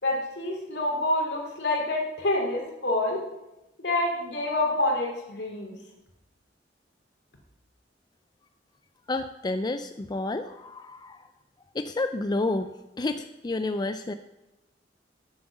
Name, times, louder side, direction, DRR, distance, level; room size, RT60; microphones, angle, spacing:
voice 1, 0.0-3.2 3.8-5.8, left 2 dB, 70° left, 0 dB, 3.0 m, -27 dB
voice 2, 9.1-11.2 11.7-12.7 13.0-14.1, left 2 dB, 25° left, 9 dB, 0.4 m, -30 dB
9.7 x 7.5 x 7.3 m, 0.95 s
head